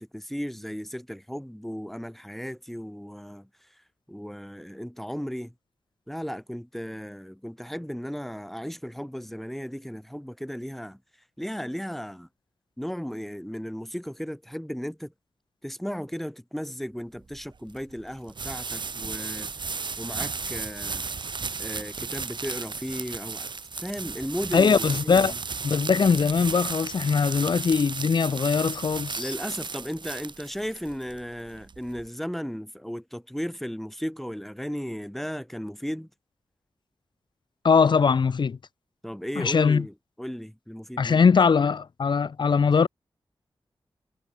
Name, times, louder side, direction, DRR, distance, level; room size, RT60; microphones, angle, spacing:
voice 1, 0.0-3.7 4.1-5.5 6.1-11.0 11.4-12.3 12.8-15.1 15.6-21.1 21.6-23.5 23.8-25.4 29.2-36.1 39.0-41.2, equal, ahead, 4.1 m, -35 dB
sound 1, 17.2-32.1, right 4 dB, 55° right, 1.2 m, -34 dB
voice 2, 24.5-25.3 25.6-29.3 37.6-38.6 39.4-39.9 41.0-42.9, left 5 dB, 55° left, 0.5 m, -21 dB
cardioid pair, 70°, 10 cm